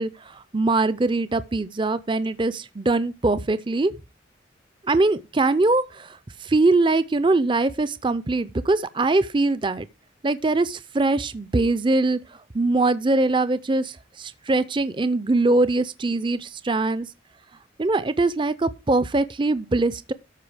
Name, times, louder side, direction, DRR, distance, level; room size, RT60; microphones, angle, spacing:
voice 1, 0.0-3.9 4.8-9.8 10.2-12.2 12.5-17.1 17.8-20.1, right 2 dB, 25° right, 0.5 m, -22 dB
13.0 x 5.4 x 4.9 m
head